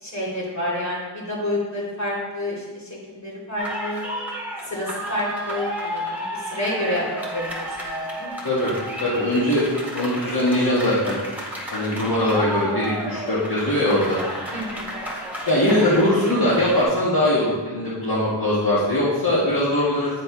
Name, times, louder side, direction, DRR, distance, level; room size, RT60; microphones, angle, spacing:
voice 1, 0.0-4.0 4.6-7.5 7.8-8.4 14.5-15.0, left 1 dB, 45° left, -6 dB, 2.7 m, -29 dB
sound 1, 3.6-16.8, equal, 5° right, 1.9 m, -32 dB
voice 2, 9.0-9.6 9.9-11.2 11.7-14.2 15.5-20.1, left 1 dB, 60° left, -9 dB, 1.7 m, -21 dB
9.2 x 4.4 x 4.7 m, 1.4 s
wide cardioid pair, 60°, 40 cm